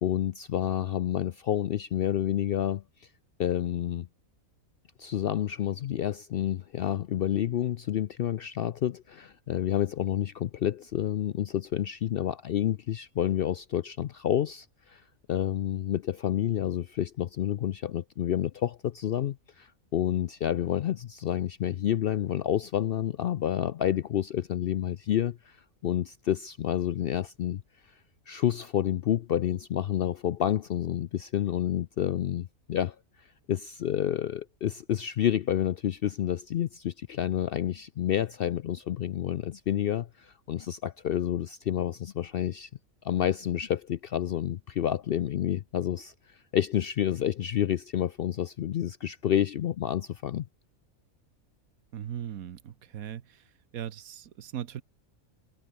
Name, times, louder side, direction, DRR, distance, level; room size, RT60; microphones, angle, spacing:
voice 1, 0.0-2.8 3.4-4.1 5.0-15.0 15.3-25.6 25.8-27.6 28.3-33.0 33.5-42.7 43.0-46.1 46.5-50.5, left 10 dB, 65° left, 0.5 m, -29 dB
voice 2, 51.9-53.4 53.7-54.8, right 10 dB, 85° right, 1.4 m, -38 dB
omnidirectional pair, 1.4 m